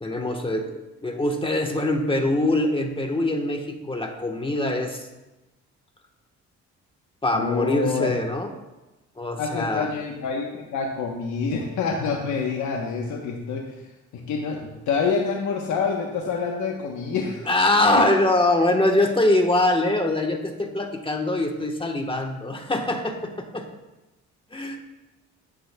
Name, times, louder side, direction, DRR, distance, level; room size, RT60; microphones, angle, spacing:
voice 1, 0.0-5.1 7.2-8.5 9.2-9.9 17.5-23.6 24.5-24.8, left 1 dB, 15° left, 3 dB, 1.2 m, -23 dB
voice 2, 7.3-8.1 9.4-13.9 14.3-17.5, left 5 dB, 75° left, 1 dB, 1.0 m, -27 dB
10.5 x 10.0 x 2.3 m, 1.0 s
cardioid pair, 90°, 30 cm